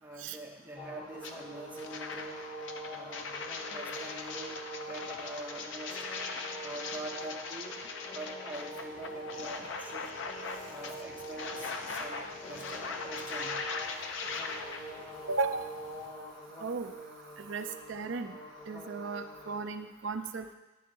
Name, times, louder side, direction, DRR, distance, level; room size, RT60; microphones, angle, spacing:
voice 1, 0.0-2.4 2.9-3.4 3.7-4.6 4.9-6.1 6.6-7.8 8.1-10.1 10.7-13.6, right 2 dB, 10° right, -2 dB, 1.0 m, -45 dB
sound 1, 0.8-19.6, equal, 20° left, 1.3 m, -44 dB
sound 2, 1.2-1.3 1.7-14.8, left 4 dB, 65° left, 0.6 m, -40 dB
sound 3, 8.8-16.1, left 1 dB, 90° left, 2.2 m, -58 dB
voice 2, 15.3-15.7 16.6-16.9 17.4-18.4 18.7-20.5, right 4 dB, 65° right, 8 dB, 0.5 m, -35 dB
9.9 x 3.7 x 6.1 m, 1.1 s
head